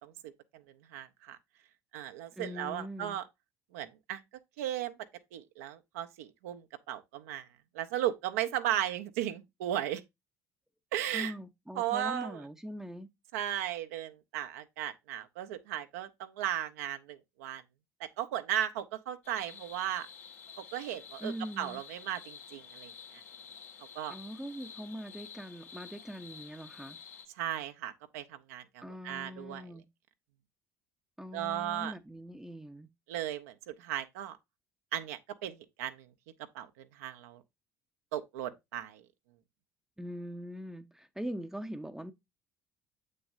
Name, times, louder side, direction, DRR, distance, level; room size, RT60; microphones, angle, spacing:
voice 1, 0.0-0.6 0.9-1.4 1.9-3.2 3.7-4.2 4.6-5.0 5.3-7.5 7.7-10.0 10.9-11.3 11.8-12.4 13.3-17.6 18.0-20.1 20.6-22.9 23.9-24.1 27.4-29.6 31.3-31.9 33.1-34.4 34.9-36.1 36.5-37.4 38.1-39.0, right 11 dB, 70° right, 0.7 m, -36 dB
voice 2, 2.3-3.2 11.1-13.1 21.2-21.8 24.1-27.0 28.8-29.9 31.2-32.9 40.0-42.1, equal, 5° right, 0.7 m, -42 dB
sound 1, 19.2-27.3, left 7 dB, 70° left, 1.9 m, -50 dB
7.8 x 6.4 x 2.6 m
figure-of-eight pair, 55°, 8 cm